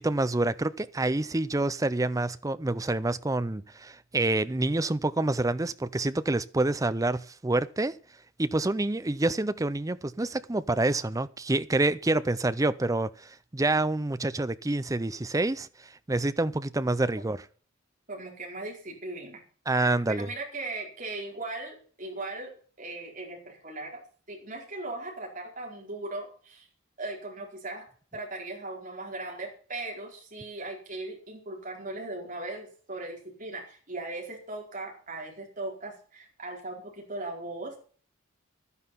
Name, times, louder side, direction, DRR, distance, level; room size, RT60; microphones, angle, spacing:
voice 1, 0.0-7.9 8.4-15.7 16.1-17.4 19.7-20.3, right 2 dB, 15° right, 0.5 m, -27 dB
voice 2, 18.1-24.0 24.3-26.7 27.0-27.9 28.1-37.8, right 2 dB, 40° right, 4.5 m, -38 dB
11.5 x 9.8 x 5.7 m
head